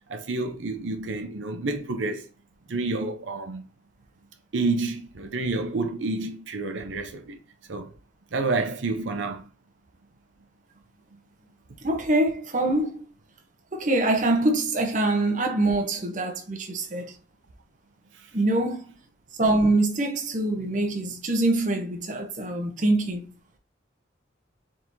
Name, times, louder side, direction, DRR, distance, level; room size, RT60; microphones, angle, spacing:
voice 1, 0.1-2.3 2.7-3.6 4.5-7.4 7.7-7.9 8.3-9.5 18.1-18.3, right 3 dB, 80° right, 0.6 m, -29 dB
voice 2, 11.8-13.0 13.7-17.2 18.3-18.9 19.4-23.3, right 2 dB, 40° right, 0.8 m, -24 dB
4.5 x 3.7 x 2.7 m
head